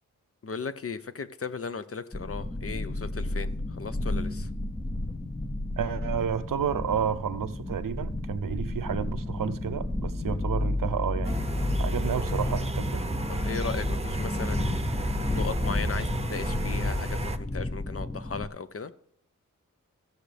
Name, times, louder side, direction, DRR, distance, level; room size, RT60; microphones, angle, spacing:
voice 1, 0.4-3.5 3.8-4.5 13.3-14.8 15.3-18.9, left 5 dB, 45° left, 0.8 m, -36 dB
sound 1, 2.1-18.5, left 2 dB, 15° left, 0.7 m, -31 dB
voice 2, 5.8-11.4 11.8-13.0, right 8 dB, 80° right, 0.7 m, -31 dB
sound 2, 11.2-17.4, right 3 dB, 20° right, 0.8 m, -34 dB
16.0 x 6.4 x 3.4 m
cardioid pair, 50°, 32 cm